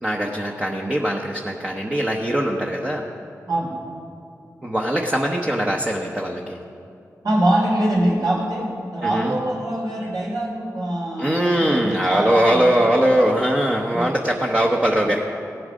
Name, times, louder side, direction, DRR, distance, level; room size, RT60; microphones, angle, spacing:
voice 1, 0.0-3.0 4.6-6.6 9.0-9.3 11.2-15.2, right 1 dB, 20° right, -1 dB, 1.0 m, -21 dB
voice 2, 3.5-3.8 7.2-12.9 13.9-14.2, right 1 dB, 80° right, -4 dB, 3.5 m, -24 dB
16.5 x 7.9 x 5.1 m, 2.5 s
cardioid pair, 50°, 7 cm